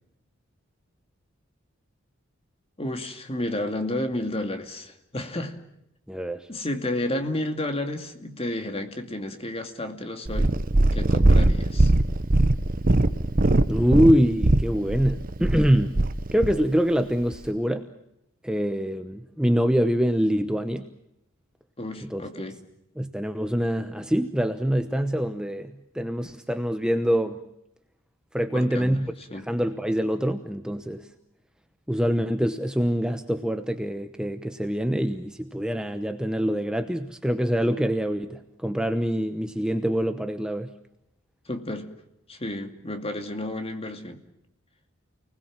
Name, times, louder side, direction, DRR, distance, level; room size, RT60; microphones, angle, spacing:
voice 1, 2.8-5.6 6.5-10.5 10.9-11.9 21.8-22.6 28.5-29.0 29.3-29.5 41.5-41.9 42.3-44.2, left 1 dB, 30° left, 6 dB, 2.4 m, -31 dB
voice 2, 6.1-6.5 13.7-15.9 16.3-17.9 18.4-20.9 22.1-22.5 23.0-27.4 28.3-31.1 31.9-40.7, equal, 5° right, 7 dB, 0.9 m, -25 dB
Purr, 10.3-16.6 17.3-17.4, right 2 dB, 40° right, 1.0 m, -21 dB
29.5 x 20.0 x 7.4 m, 0.81 s
head